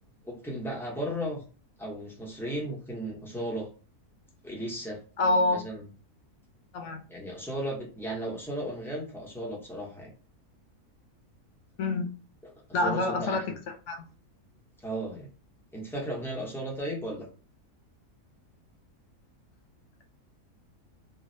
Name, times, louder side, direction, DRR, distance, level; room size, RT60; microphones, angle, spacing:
voice 1, 0.2-1.4 1.8-3.7 4.4-5.0 5.5-5.9 7.1-10.1 12.7-13.6 14.8-15.3 15.7-17.3, right 1 dB, 5° left, -3 dB, 0.5 m, -35 dB
voice 2, 5.2-5.6 6.7-7.0 11.8-12.1 12.7-13.4 13.9-14.1, left 2 dB, 65° left, 5 dB, 0.7 m, -26 dB
3.8 x 2.0 x 2.6 m, 0.36 s
omnidirectional pair, 1.6 m